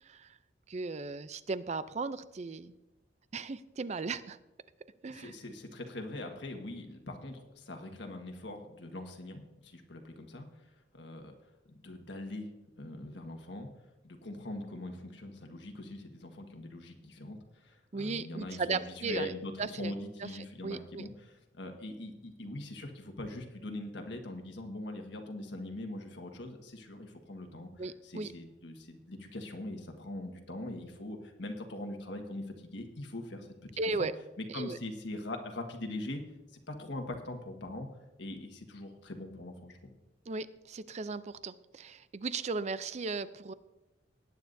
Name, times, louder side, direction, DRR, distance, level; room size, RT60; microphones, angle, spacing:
voice 1, 0.0-0.4 0.7-2.7 3.3-4.4 5.0-5.4 17.9-19.3 19.6-19.9 20.2-20.3 20.6-21.1 27.8-28.3 33.8-34.1 34.5-34.8 40.3-43.5, right 4 dB, 35° right, 15 dB, 0.4 m, -36 dB
voice 2, 5.1-10.5 10.9-11.3 11.7-13.7 14.0-27.7 28.0-33.7 34.5-36.2 36.5-37.9 38.2-39.9, left 1 dB, 70° left, 4 dB, 1.5 m, -42 dB
19.0 x 9.3 x 2.7 m, 0.99 s
head